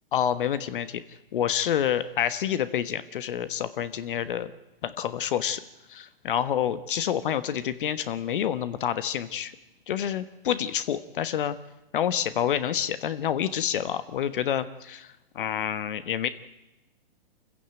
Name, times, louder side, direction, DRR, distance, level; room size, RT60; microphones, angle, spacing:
voice 1, 0.1-1.0 1.3-4.5 4.8-5.6 5.9-9.5 9.9-11.6 11.9-15.1 15.3-16.3, left 9 dB, 60° left, 13 dB, 1.3 m, -28 dB
25.5 x 15.5 x 9.0 m, 0.95 s
hypercardioid pair, 135°, 29 cm